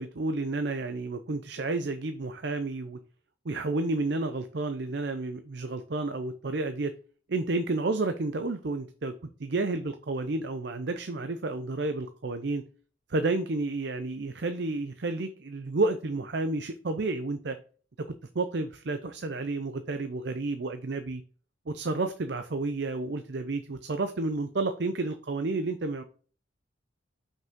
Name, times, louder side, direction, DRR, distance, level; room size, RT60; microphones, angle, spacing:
voice 1, 0.0-3.0 3.4-6.9 7.3-9.1 9.4-12.6 13.1-17.6 18.0-18.1 18.3-21.2 21.7-26.0, right 2 dB, 60° right, 8 dB, 0.6 m, -31 dB
5.9 x 5.4 x 3.6 m, 0.40 s
head